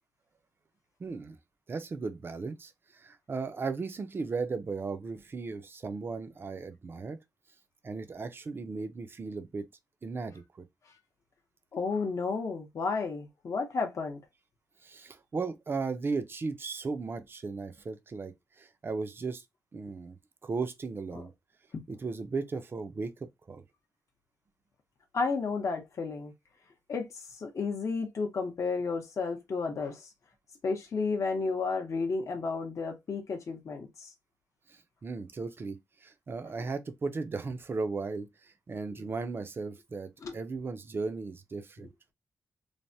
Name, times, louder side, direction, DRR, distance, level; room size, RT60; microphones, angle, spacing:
voice 1, 1.0-1.4 1.7-7.2 7.8-9.7 10.0-10.6 14.8-19.4 19.7-20.2 20.4-21.3 21.9-23.6 34.7-41.9, right 4 dB, 35° right, 0.4 m, -36 dB
voice 2, 11.7-14.2 21.1-21.2 25.1-26.3 26.9-30.1 30.6-34.1 40.2-40.3, left 4 dB, 50° left, 0.6 m, -32 dB
3.2 x 2.1 x 2.6 m
wide cardioid pair, 125°, 7 cm